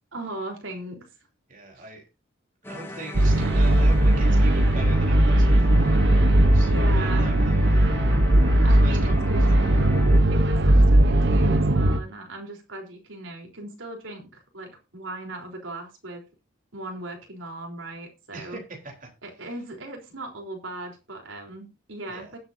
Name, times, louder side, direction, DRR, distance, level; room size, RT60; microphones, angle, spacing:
voice 1, 0.1-1.1 1.8-1.9 6.6-7.3 8.6-9.4 10.3-16.2 16.7-18.6 19.2-22.4, right 2 dB, 85° right, 1 dB, 3.8 m, -37 dB
voice 2, 1.5-2.0 2.7-6.1 6.5-9.2 9.5-9.7 18.3-19.1 19.4-19.5 22.1-22.3, right 2 dB, 45° right, 2 dB, 3.7 m, -41 dB
sound 1, 2.6-10.2, left 1 dB, 10° left, 2.1 m, -38 dB
sound 2, 3.1-12.0, right 1 dB, 60° right, 1.0 m, -18 dB
20.0 x 8.0 x 2.7 m, 0.29 s
head